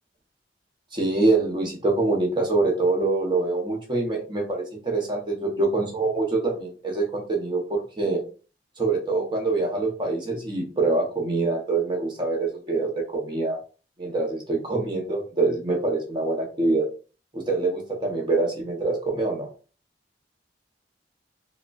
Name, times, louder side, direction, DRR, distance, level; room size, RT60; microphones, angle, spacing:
voice 1, 0.9-8.2 8.8-13.6 14.0-16.9 17.3-19.5, right 3 dB, 25° right, 1 dB, 0.7 m, -25 dB
4.8 x 2.2 x 2.3 m, 0.35 s
head